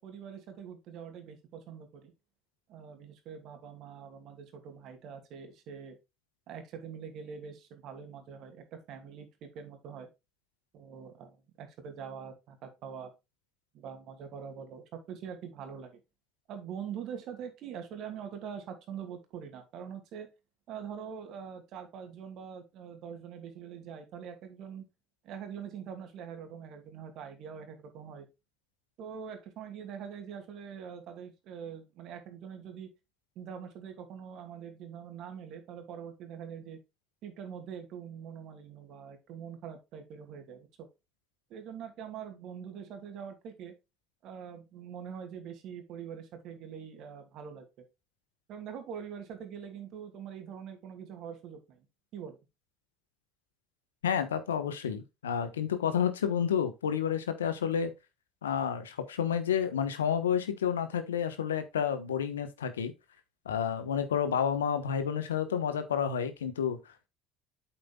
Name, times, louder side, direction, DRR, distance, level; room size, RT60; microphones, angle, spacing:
voice 1, 0.0-2.1 2.7-6.0 6.5-10.1 10.7-13.1 13.7-16.0 16.5-20.3 20.7-24.8 25.2-28.3 29.0-32.9 33.4-36.8 37.2-40.9 41.5-43.7 44.2-47.6 48.5-51.9 52.1-52.4, right 7 dB, 60° right, 2.6 m, -44 dB
voice 2, 54.0-57.9 58.4-62.9 63.4-67.1, left 8 dB, 85° left, 1.1 m, -30 dB
8.2 x 7.7 x 2.3 m
hypercardioid pair, 65°, 0 cm